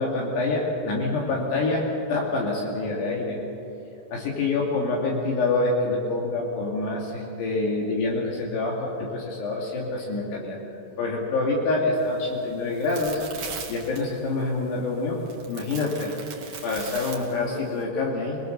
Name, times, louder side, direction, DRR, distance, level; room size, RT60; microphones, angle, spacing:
voice 1, 0.0-3.4 4.1-10.6 11.0-13.2 13.7-16.1 16.6-18.4, left 3 dB, 65° left, -2 dB, 4.4 m, -26 dB
sound 1, 12.0-17.8, right 5 dB, 50° right, 2.4 m, -40 dB
26.0 x 21.0 x 6.6 m, 2.9 s
omnidirectional pair, 5.3 m